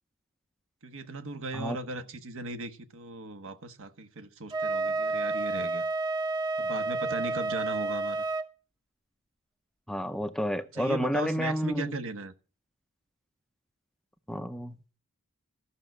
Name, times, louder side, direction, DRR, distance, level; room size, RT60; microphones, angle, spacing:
voice 1, 0.8-5.8 6.6-8.2 10.7-12.3, right 2 dB, 65° right, 1.4 m, -37 dB
Wind instrument woodwind instrument, 4.5-8.5, right 3 dB, 20° right, 0.9 m, -30 dB
voice 2, 9.9-11.9 14.3-15.0, equal, ahead, 0.6 m, -31 dB
14.5 x 6.2 x 7.8 m
head